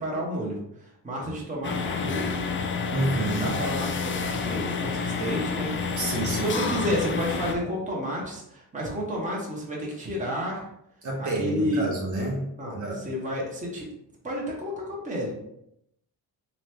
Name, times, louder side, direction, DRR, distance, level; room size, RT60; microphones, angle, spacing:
voice 1, 0.0-2.4 3.2-5.7 6.3-10.7 11.2-11.9 12.6-13.8 14.2-15.3, equal, 20° right, -3 dB, 1.0 m, -31 dB
sound 1, 1.6-7.5, left 5 dB, 35° left, 0.4 m, -29 dB
voice 2, 2.9-3.6 6.0-6.6 11.0-12.4 12.7-13.0, right 2 dB, 50° right, -2 dB, 0.9 m, -28 dB
3.9 x 3.0 x 3.3 m, 0.78 s
wide cardioid pair, 165°, 39 cm